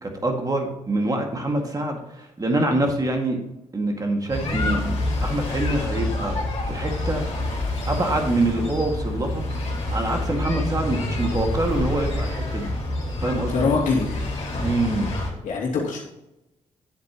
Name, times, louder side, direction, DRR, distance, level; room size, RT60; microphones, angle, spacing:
voice 1, 0.0-3.4 3.7-6.3 6.7-7.3 7.9-9.4 9.9-12.7 13.2-13.7 14.6-15.1, right 2 dB, 30° right, 2 dB, 2.0 m, -25 dB
sound 1, 4.3-15.3, left 2 dB, 50° left, 3.3 m, -27 dB
voice 2, 13.5-14.4 15.4-16.0, left 4 dB, 75° left, -2 dB, 2.6 m, -24 dB
9.8 x 7.7 x 3.0 m, 0.90 s
cardioid pair, 75°, 13 cm